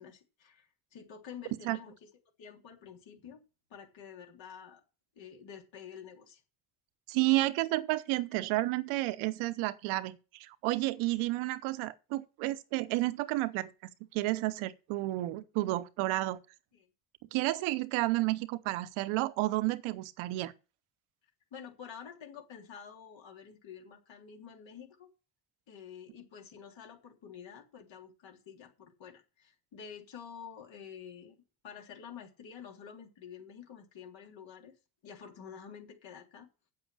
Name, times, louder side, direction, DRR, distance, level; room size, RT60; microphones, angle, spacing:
voice 1, 0.0-2.1 2.4-3.4 3.7-4.8 5.1-6.4 16.7-16.9 21.5-25.1 25.7-31.4 31.6-34.7 35.0-36.5, left 7 dB, 70° left, 3.4 m, -49 dB
voice 2, 7.1-13.7 14.1-16.4 17.3-20.5, right 18 dB, 90° right, 0.9 m, -31 dB
8.4 x 7.6 x 6.9 m
supercardioid pair, 55°, 47 cm